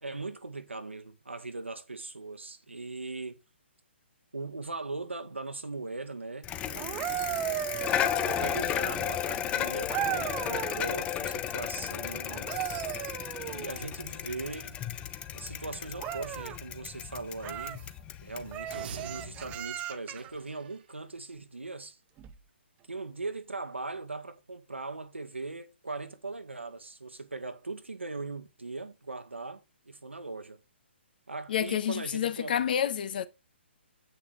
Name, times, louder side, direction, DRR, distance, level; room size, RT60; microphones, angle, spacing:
voice 1, 0.0-3.4 4.3-7.2 7.9-12.5 13.4-14.8 15.3-17.9 18.2-22.0 22.9-30.6 31.3-32.6, right 3 dB, 85° right, 1.8 m, -40 dB
Bicycle, 6.4-19.6, left 10 dB, 15° left, 0.9 m, -34 dB
sound 1, 6.8-8.8 9.9-10.9 12.3-13.9 16.0-16.6 17.4-17.8 18.5-20.3 22.2-22.4, right 12 dB, 20° right, 1.0 m, -36 dB
sound 2, 18.7-20.9, right 6 dB, 55° right, 1.8 m, -47 dB
voice 2, 31.5-33.3, left 9 dB, 50° left, 1.3 m, -29 dB
9.7 x 8.7 x 3.4 m
figure-of-eight pair, 130°, 6 cm